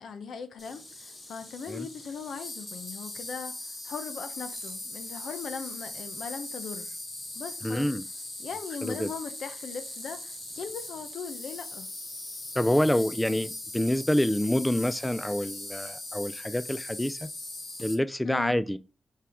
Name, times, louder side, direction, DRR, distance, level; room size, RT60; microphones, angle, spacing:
voice 1, 0.0-7.0 7.3-7.9 8.4-11.9 18.2-18.5, left 6 dB, 85° left, 0.8 m, -39 dB
Insect, 0.6-17.9, left 2 dB, 35° left, 1.6 m, -40 dB
sound 1, 4.5-11.3, right 6 dB, 70° right, 1.0 m, -55 dB
voice 2, 7.6-8.0 8.8-9.1 12.6-17.3 17.8-18.8, left 1 dB, 5° left, 0.3 m, -27 dB
5.8 x 4.7 x 3.6 m
wide cardioid pair, 130°, 0 cm